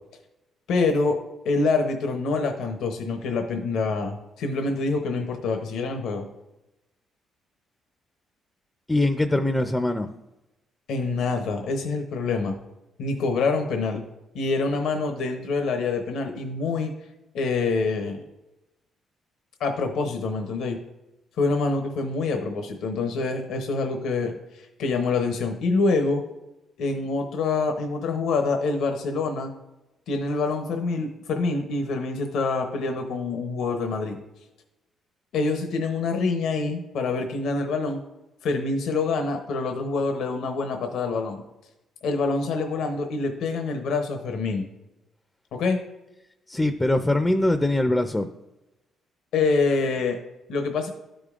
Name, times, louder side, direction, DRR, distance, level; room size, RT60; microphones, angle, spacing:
voice 1, 0.7-1.2 1.4-6.3 10.9-12.6 13.0-14.0 14.3-16.9 17.3-18.2 19.6-20.8 21.4-26.2 26.8-29.5 30.1-34.2 35.3-38.0 38.4-41.4 42.0-44.7 45.5-45.8 49.3-50.2 50.5-50.9, left 3 dB, 80° left, 5 dB, 0.8 m, -26 dB
voice 2, 8.9-10.1 46.5-48.3, left 1 dB, 10° left, 8 dB, 0.4 m, -22 dB
12.5 x 5.1 x 2.4 m, 0.98 s
cardioid pair, 90°, 0 cm